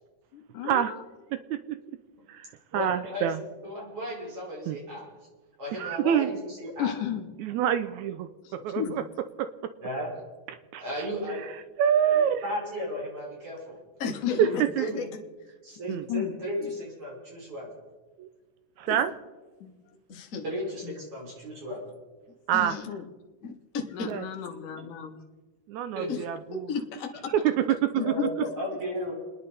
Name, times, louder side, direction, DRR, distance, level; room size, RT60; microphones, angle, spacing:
voice 1, 0.3-1.0 6.8-7.3 8.4-9.0 14.2-14.6 15.9-16.4 19.6-19.7 20.8-21.0 22.9-23.1 23.9-25.2 28.0-28.3, left 10 dB, 85° left, 5 dB, 2.8 m, -34 dB
voice 2, 1.3-1.8 2.7-3.4 4.7-4.8 5.8-6.3 7.4-9.0 9.4-9.5 10.7-10.8 11.8-12.4 14.4-14.9 15.9-16.0 18.2-18.3 18.8-19.1 22.5-22.7 24.1-24.3 25.7-26.7 27.3-28.1, right 9 dB, 80° right, 11 dB, 2.0 m, -26 dB
voice 3, 2.7-3.3 3.6-5.1 5.6-6.9 9.8-10.1 10.8-11.4 11.9-13.8 14.4-14.5 14.8-15.1 15.6-17.7 20.4-21.8 26.0-26.1 28.0-29.1, equal, 45° right, -4 dB, 6.5 m, -35 dB
voice 4, 14.0-15.0 16.6-16.7 18.9-19.0 20.1-20.4 22.5-22.9 23.4-24.1 26.1-26.2 26.5-27.3, left 5 dB, 55° left, 5 dB, 0.9 m, -34 dB
29.5 x 10.5 x 4.2 m, 1.3 s
omnidirectional pair, 3.5 m